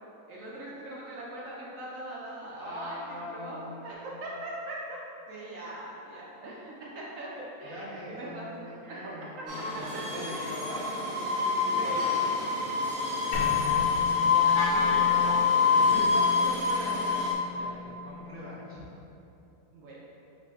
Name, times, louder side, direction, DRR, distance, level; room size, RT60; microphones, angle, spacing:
voice 1, 0.3-5.0 5.3-9.1 9.6-10.7 11.8-12.1 13.0-15.3 15.9-17.2 19.7-20.0, right 1 dB, 70° right, -5 dB, 0.9 m, -41 dB
voice 2, 2.5-4.0 7.7-12.1 15.7-16.0 17.5-18.8, left 1 dB, 10° left, -10 dB, 0.7 m, -42 dB
sound 1, 9.5-17.3, left 5 dB, 85° right, 1.4 m, -26 dB
sound 2, 13.3-17.3, left 2 dB, 70° left, 1.1 m, -39 dB
Wind instrument woodwind instrument, 14.5-18.8, left 2 dB, 90° left, 1.2 m, -37 dB
4.9 x 3.9 x 2.4 m, 2.8 s
omnidirectional pair, 1.6 m